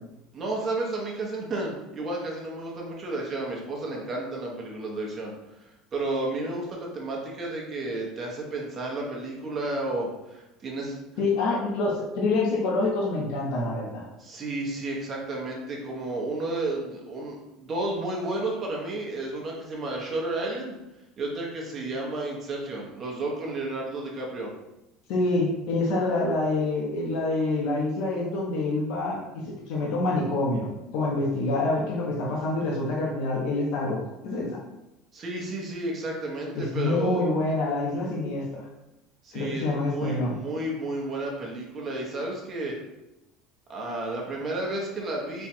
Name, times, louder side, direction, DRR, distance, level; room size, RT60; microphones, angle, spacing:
voice 1, 0.3-5.3 5.9-11.0 14.2-20.7 21.2-24.5 35.1-37.2 39.2-42.7 43.7-45.5, right 2 dB, 30° right, -2 dB, 1.0 m, -32 dB
voice 2, 11.2-14.0 25.1-34.6 36.6-38.6 39.3-40.4, left 2 dB, 65° left, -3 dB, 0.9 m, -26 dB
4.4 x 2.4 x 4.4 m, 0.93 s
cardioid pair, 155°, 0 cm